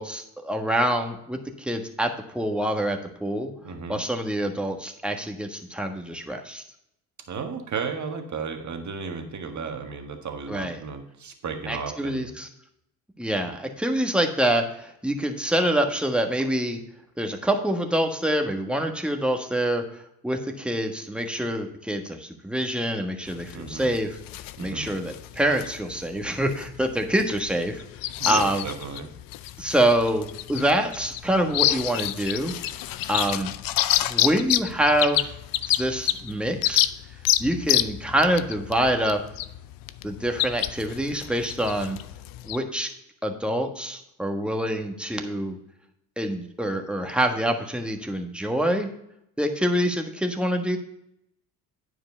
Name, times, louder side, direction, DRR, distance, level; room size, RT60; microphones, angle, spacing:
voice 1, 0.0-3.5 3.9-6.6 10.5-10.8 11.7-12.5 13.2-16.8 17.2-19.9 20.2-24.2 24.6-27.8 28.2-28.7 29.6-32.5 33.1-33.5 34.1-35.3 35.7-36.9 37.4-39.2 40.0-42.0 42.4-42.9 43.2-45.6 46.2-48.9 49.4-50.8, right 1 dB, ahead, 3 dB, 1.4 m, -26 dB
voice 2, 3.6-4.0 7.3-12.4 23.5-23.9 24.6-24.9 28.2-29.1, right 5 dB, 40° right, 5 dB, 1.6 m, -34 dB
sound 1, 23.3-42.6, left 14 dB, 55° left, 0.5 m, -28 dB
9.3 x 5.0 x 5.4 m, 0.78 s
hypercardioid pair, 60°, 43 cm